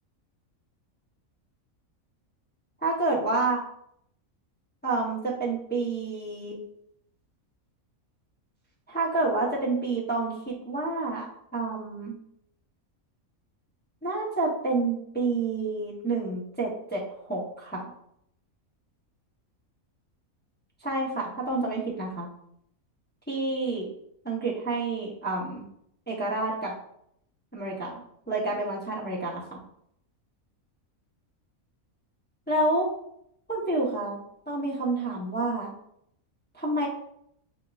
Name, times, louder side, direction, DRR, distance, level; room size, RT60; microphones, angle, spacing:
voice 1, 2.8-3.6 4.8-6.6 8.9-11.3 11.5-12.1 14.0-17.9 20.8-22.3 23.3-23.9 24.2-25.6 26.1-26.7 27.5-28.0 28.3-29.6 32.5-32.9 33.5-34.2 34.5-35.7 36.5-36.9, right 2 dB, 10° left, -5 dB, 0.7 m, -29 dB
5.3 x 3.6 x 2.4 m, 0.71 s
omnidirectional pair, 1.5 m